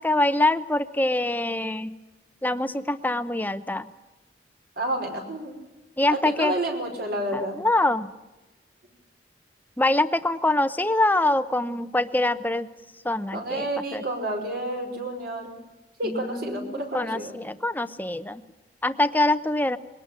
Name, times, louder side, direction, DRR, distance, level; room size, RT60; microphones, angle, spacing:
voice 1, 0.0-1.9 2.4-3.9 6.0-6.5 7.3-8.1 9.8-12.7 13.0-14.0 16.0-18.4 18.8-19.8, left 2 dB, 10° left, 11 dB, 0.8 m, -24 dB
voice 2, 4.8-5.6 6.1-7.6 13.3-15.5 16.0-17.4, right 1 dB, 60° right, 3 dB, 5.3 m, -30 dB
22.0 x 18.5 x 9.0 m, 1.1 s
head